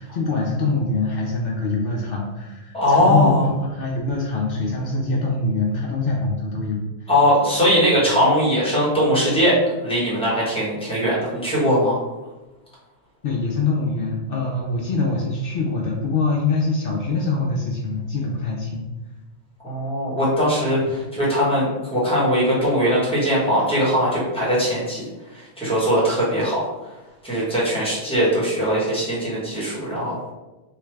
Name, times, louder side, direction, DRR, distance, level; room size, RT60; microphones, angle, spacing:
voice 1, 0.0-7.1 13.2-18.9 20.8-20.9, left 3 dB, 60° left, -2 dB, 0.7 m, -24 dB
voice 2, 2.7-3.4 7.1-12.0 19.6-25.0 25.6-26.6 27.2-30.2, equal, 5° left, -8 dB, 1.0 m, -20 dB
3.2 x 2.3 x 3.2 m, 1.1 s
omnidirectional pair, 1.2 m